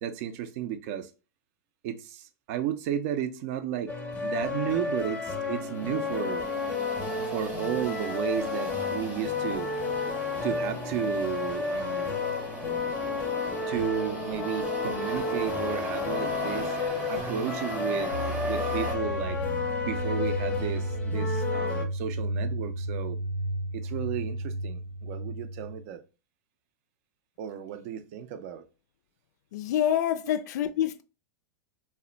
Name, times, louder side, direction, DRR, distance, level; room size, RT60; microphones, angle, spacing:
voice 1, 0.0-1.1 1.8-3.9 4.2-6.5 7.1-9.7 10.4-12.1 13.7-16.8 17.1-19.4 19.8-23.2 23.7-26.0 27.4-28.6 30.2-30.4, right 10 dB, 50° right, 0.4 m, -33 dB
sound 1, 3.9-21.9, left 4 dB, 15° left, 0.5 m, -32 dB
sound 2, 5.4-19.0, right 1 dB, 15° right, 0.7 m, -39 dB
sound 3, 18.1-25.9, right 1 dB, 80° right, 0.9 m, -33 dB
voice 2, 29.5-31.0, left 10 dB, 65° left, 0.4 m, -26 dB
2.1 x 2.1 x 3.7 m
hypercardioid pair, 130°, 10 cm